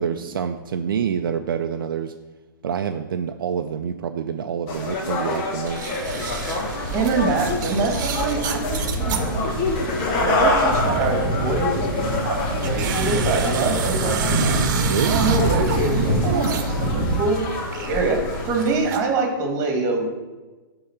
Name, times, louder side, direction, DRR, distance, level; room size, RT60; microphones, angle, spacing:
voice 1, 0.0-2.1 2.6-5.9 14.9-15.2 16.3-16.5, right 7 dB, 70° right, 6 dB, 0.5 m, -26 dB
sound 1, 4.7-18.8, left 2 dB, 35° left, 1.6 m, -27 dB
sound 2, 5.7-9.3 9.7-11.2 11.7-16.9 17.2-19.0, right 7 dB, 50° right, 1.1 m, -32 dB
sound 3, 6.0-17.2, right 1 dB, 5° left, 1.8 m, -26 dB
voice 2, 6.9-9.6 10.2-14.6 15.0-16.6 16.9-17.4 17.9-18.2 18.5-20.1, right 3 dB, 30° right, 3 dB, 2.0 m, -25 dB
9.5 x 3.9 x 5.9 m, 1.2 s
hypercardioid pair, 140°, 12 cm